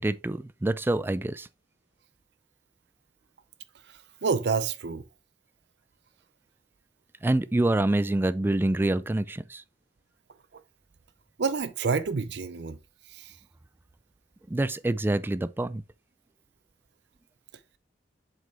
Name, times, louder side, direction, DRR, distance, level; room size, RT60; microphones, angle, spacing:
voice 1, 0.0-1.5 7.2-9.6 14.5-15.8, right 1 dB, 10° right, 0.3 m, -26 dB
voice 2, 4.2-5.0 11.4-12.8 13.1-13.3, right 5 dB, 65° right, 0.5 m, -28 dB
7.5 x 5.2 x 3.3 m
head